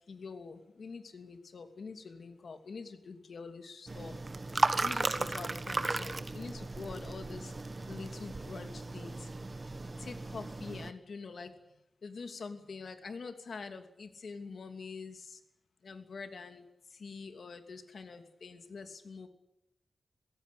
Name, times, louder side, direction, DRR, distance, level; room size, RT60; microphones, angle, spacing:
voice 1, 0.1-4.2 4.8-7.5 7.9-9.3 10.0-11.5 12.0-15.4 15.8-19.3, left 4 dB, 65° left, 7 dB, 2.8 m, -45 dB
sound 1, 3.9-10.9, right 3 dB, 30° right, 1.3 m, -35 dB
24.0 x 17.0 x 8.5 m, 0.85 s
wide cardioid pair, 135°, 0 cm